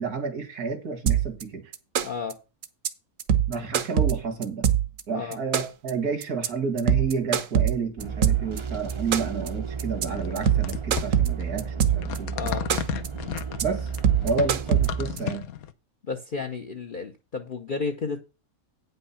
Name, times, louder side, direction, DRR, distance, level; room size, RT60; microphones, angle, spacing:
voice 1, 0.0-1.6 3.5-4.7 5.1-12.6 13.6-13.9 14.2-15.5, right 5 dB, 85° right, 2.3 m, -30 dB
sound 1, 1.1-1.4 1.7-2.3 2.6-2.9 3.2-5.0 5.3-5.9 6.2-6.5 6.8-8.6 8.9-9.5 9.8-10.0 10.4-12.2 12.5-13.1 13.4-13.6 13.9-15.2, right 9 dB, 65° right, 1.2 m, -23 dB
voice 2, 2.0-2.4 5.1-5.4 12.3-12.7 16.1-18.2, left 5 dB, 40° left, 0.9 m, -32 dB
sound 2, 8.0-15.2, right 6 dB, 30° right, 0.6 m, -33 dB
sound 3, 10.0-15.7, left 10 dB, 75° left, 1.2 m, -34 dB
8.9 x 5.6 x 5.6 m
omnidirectional pair, 1.6 m